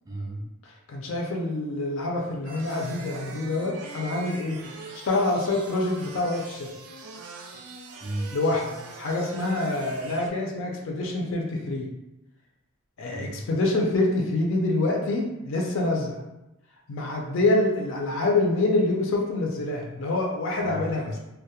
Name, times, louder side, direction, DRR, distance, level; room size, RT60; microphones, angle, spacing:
voice 1, 0.1-0.4 8.0-8.3 13.1-13.4 20.5-21.2, right 1 dB, 15° right, -2 dB, 0.3 m, -34 dB
voice 2, 0.9-4.6 5.0-6.7 8.3-11.9 13.0-16.2 16.9-21.1, left 2 dB, 65° left, 0 dB, 0.4 m, -26 dB
sound 1, 2.4-10.3, right 4 dB, 90° right, 0.4 m, -42 dB
2.2 x 2.0 x 2.7 m, 0.94 s
head